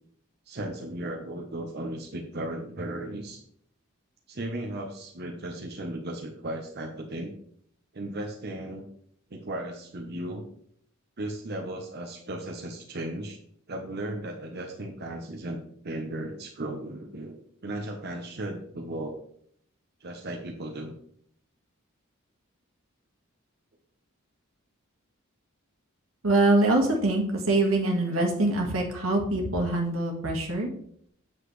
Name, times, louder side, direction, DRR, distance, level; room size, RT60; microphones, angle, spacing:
voice 1, 0.5-3.4 4.3-7.3 7.9-8.8 9.3-10.4 11.2-13.4 13.7-15.6 15.8-19.2 20.0-20.9, right 1 dB, 50° right, 1 dB, 1.0 m, -36 dB
voice 2, 26.2-30.7, right 2 dB, 90° right, 1 dB, 1.8 m, -24 dB
8.1 x 7.3 x 3.2 m, 0.66 s
head